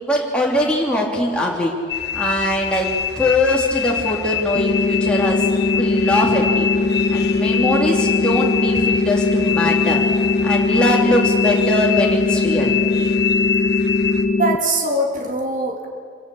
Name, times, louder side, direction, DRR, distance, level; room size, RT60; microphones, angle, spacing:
voice 1, 0.1-1.7 2.1-5.4 5.7-6.7 7.1-10.0 10.4-12.7, left 1 dB, 5° left, -3 dB, 3.0 m, -21 dB
sound 1, 1.9-14.2, left 8 dB, 75° left, 1.3 m, -25 dB
sound 2, 4.6-14.6, left 3 dB, 35° left, 0.7 m, -20 dB
voice 2, 14.4-15.9, right 1 dB, 45° right, 2 dB, 2.8 m, -22 dB
26.5 x 17.0 x 7.1 m, 2.1 s
head